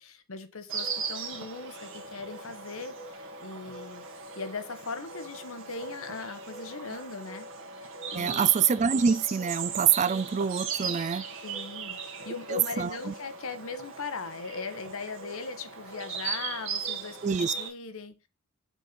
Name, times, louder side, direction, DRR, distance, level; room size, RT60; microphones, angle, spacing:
voice 1, 0.0-4.0 4.4-7.5 7.8-8.5 11.4-18.2, left 4 dB, 65° left, 1.0 m, -39 dB
Insect, 0.7-17.7, right 5 dB, 60° right, 1.7 m, -38 dB
voice 2, 8.1-11.3 12.5-13.1 17.2-17.5, right 7 dB, 30° right, 0.3 m, -26 dB
6.3 x 4.3 x 5.1 m
head